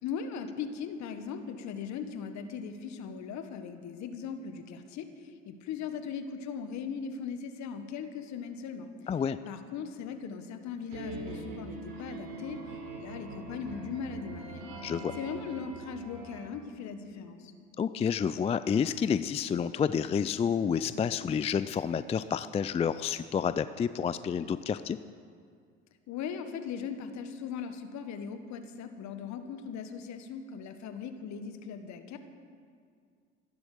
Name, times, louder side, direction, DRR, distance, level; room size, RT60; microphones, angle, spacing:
voice 1, 0.0-9.1 9.4-14.8 15.1-17.5 26.1-32.2, left 6 dB, 55° left, 9 dB, 1.5 m, -39 dB
voice 2, 9.1-9.4 14.8-15.1 17.8-25.0, left 7 dB, 20° left, 14 dB, 0.4 m, -29 dB
sound 1, 10.9-16.4, right 2 dB, 65° right, 4.3 m, -43 dB
14.5 x 11.5 x 6.7 m, 2.2 s
hypercardioid pair, 65°, 34 cm